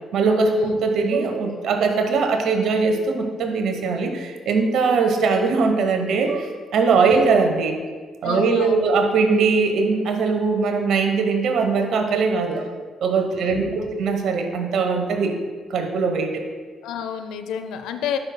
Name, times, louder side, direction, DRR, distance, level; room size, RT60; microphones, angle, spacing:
voice 1, 0.1-7.8 8.2-12.7 13.0-15.4 15.7-16.4, right 4 dB, 65° right, 5 dB, 1.0 m, -21 dB
voice 2, 8.2-8.9 13.4-13.9 16.8-18.2, left 8 dB, 75° left, 8 dB, 0.5 m, -30 dB
12.5 x 5.9 x 2.2 m, 1.5 s
hypercardioid pair, 45°, 0 cm